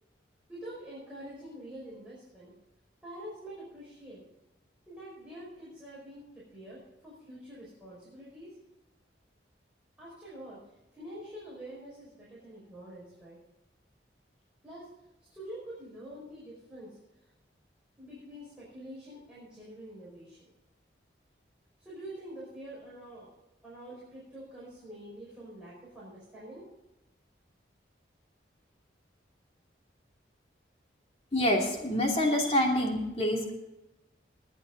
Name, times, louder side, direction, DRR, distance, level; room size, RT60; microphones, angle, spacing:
voice 1, 0.5-2.5 3.0-4.2 4.9-8.6 10.0-13.4 14.6-14.9 15.2-17.3 18.0-20.5 21.8-23.3 23.6-26.7, right 1 dB, 5° right, -9 dB, 5.5 m, -46 dB
voice 2, 31.3-33.5, left 1 dB, 35° left, 1 dB, 2.7 m, -26 dB
21.0 x 9.4 x 3.9 m, 0.96 s
head